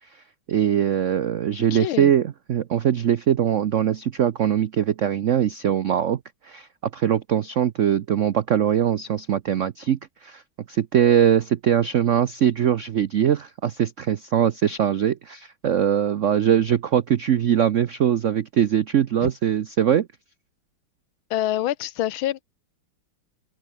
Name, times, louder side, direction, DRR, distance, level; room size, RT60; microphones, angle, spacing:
voice 1, 0.0-10.4 10.7-20.1, right 9 dB, 85° right, 0.6 m, -22 dB
voice 2, 1.7-2.1 19.2-19.3 21.3-22.4, left 13 dB, 75° left, 1.6 m, -26 dB
omnidirectional pair, 2.3 m